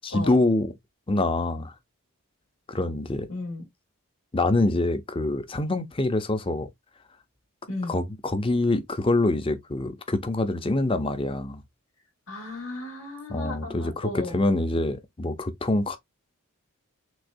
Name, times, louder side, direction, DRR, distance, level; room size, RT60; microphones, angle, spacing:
voice 1, 0.0-0.7 1.1-1.7 2.7-3.3 4.3-6.7 7.9-11.6 13.3-16.0, left 2 dB, 25° left, 0.6 m, -25 dB
voice 2, 3.3-3.6 7.7-8.0 12.3-14.4, left 2 dB, 70° left, 3.3 m, -35 dB
6.4 x 2.9 x 2.6 m
head